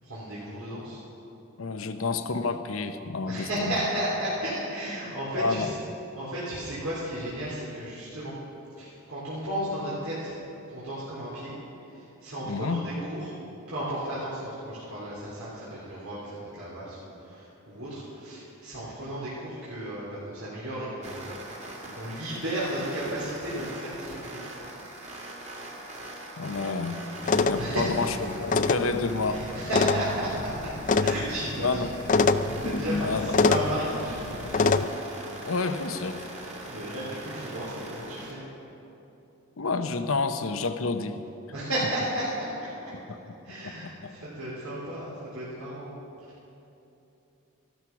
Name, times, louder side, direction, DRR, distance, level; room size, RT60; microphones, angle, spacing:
voice 1, 0.0-1.0 3.2-5.7 6.1-8.3 8.8-10.3 10.7-11.5 11.9-13.3 13.7-21.3 21.9-24.4 27.6-27.9 29.3-30.7 31.0-31.9 32.2-34.1 36.7-38.5 41.5-42.7 43.4-45.9 46.2-46.3, right 1 dB, 85° right, -9 dB, 3.5 m, -34 dB
voice 2, 1.6-3.7 5.4-5.7 12.5-12.8 26.4-27.0 27.5-28.1 28.4-29.5 31.6-31.9 33.0-33.3 35.4-36.3 39.6-41.2 43.1-43.2 43.6-43.7 44.0-44.1, left 4 dB, 65° left, 9 dB, 0.8 m, -29 dB
sound 1, 21.0-38.3, right 1 dB, 30° right, 2.1 m, -42 dB
sound 2, 27.2-34.8, left 4 dB, 35° left, 0.4 m, -26 dB
14.5 x 12.5 x 5.9 m, 2.9 s
head